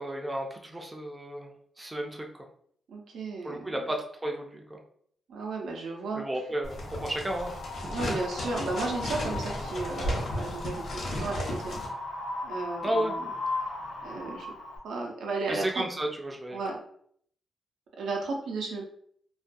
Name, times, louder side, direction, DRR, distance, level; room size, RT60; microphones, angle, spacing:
voice 1, 0.0-1.5 1.8-2.4 3.4-4.8 6.1-7.5 12.8-13.1 15.5-16.6, right 1 dB, 15° right, 1 dB, 0.4 m, -33 dB
voice 2, 2.9-3.8 5.3-6.2 7.8-11.8 12.4-13.3 14.0-14.5 14.8-15.8 16.5-16.8 18.0-18.9, right 3 dB, 80° right, 1 dB, 0.5 m, -34 dB
sound 1, 6.6-11.9, equal, 60° left, 0.9 m, -34 dB
Wind, 6.7-14.8, left 3 dB, 85° left, 0.5 m, -37 dB
2.3 x 2.2 x 2.5 m, 0.63 s
wide cardioid pair, 130°, 0 cm